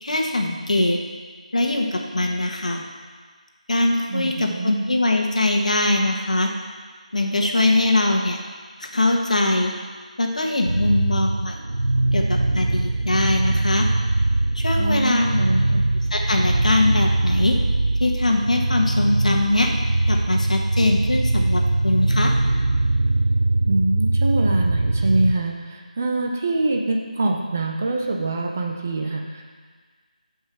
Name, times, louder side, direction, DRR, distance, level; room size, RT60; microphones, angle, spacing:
voice 1, 0.0-1.0 1.5-2.8 3.7-6.5 7.1-8.4 8.8-9.7 10.2-11.6 12.1-13.9 14.5-15.4 16.1-17.6 18.0-19.7 20.1-22.3, left 2 dB, 60° left, 2 dB, 1.5 m, -22 dB
voice 2, 4.1-4.8 14.8-15.9 23.7-29.4, right 2 dB, 15° right, 1 dB, 0.5 m, -24 dB
sound 1, 10.6-25.3, right 2 dB, 70° right, 0.8 m, -21 dB
12.5 x 5.5 x 6.2 m, 1.5 s
figure-of-eight pair, 175°, 4 cm